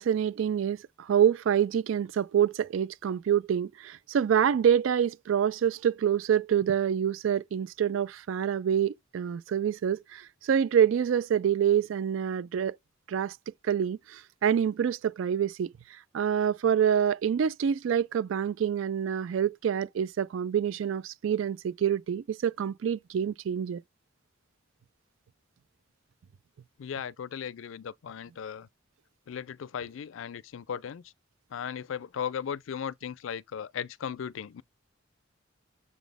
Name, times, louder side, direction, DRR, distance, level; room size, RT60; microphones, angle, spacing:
voice 1, 0.0-12.8 13.1-13.4 13.6-15.7 16.1-23.8, right 8 dB, 80° right, 0.3 m, -26 dB
voice 2, 26.8-28.7 29.3-31.1 31.5-34.6, left 7 dB, 80° left, 0.4 m, -37 dB
7.1 x 4.0 x 3.4 m
head